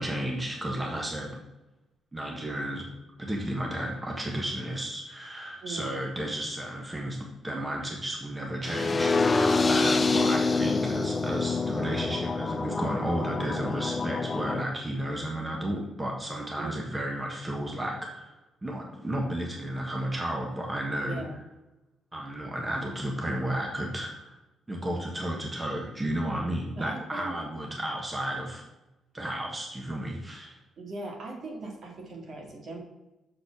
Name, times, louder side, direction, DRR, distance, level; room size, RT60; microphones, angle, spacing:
voice 1, 0.0-1.3 2.1-2.9 3.2-21.2 22.1-24.3 24.7-28.6 29.1-30.6, right 1 dB, 20° right, 0 dB, 1.3 m, -33 dB
voice 2, 5.6-5.9 16.5-16.8 21.0-21.4 26.8-27.4 30.8-32.8, right 2 dB, 55° right, 1 dB, 2.0 m, -39 dB
sound 1, 8.6-14.6, left 3 dB, 30° left, 0.4 m, -26 dB
6.8 x 4.0 x 5.9 m, 1.0 s
cardioid pair, 90°, 0 cm